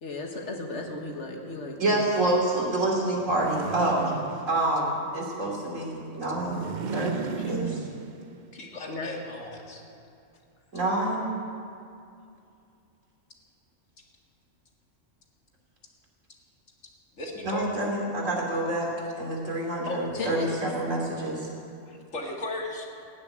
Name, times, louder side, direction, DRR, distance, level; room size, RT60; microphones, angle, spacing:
voice 1, 0.0-2.1 8.9-9.2 20.1-20.6, left 3 dB, 65° left, 2 dB, 1.8 m, -35 dB
voice 2, 1.8-4.1 4.5-6.7 6.9-7.8 10.7-11.2 17.4-18.9 19.2-21.5, right 1 dB, 85° right, -2 dB, 3.2 m, -27 dB
sound 1, 3.2-4.9 6.3-8.4, right 6 dB, 50° right, 0.6 m, -35 dB
voice 3, 8.5-9.8 17.2-17.7 19.9-20.4 21.9-22.9, left 2 dB, 85° left, 0 dB, 2.2 m, -36 dB
15.5 x 7.4 x 9.6 m, 2.5 s
omnidirectional pair, 1.3 m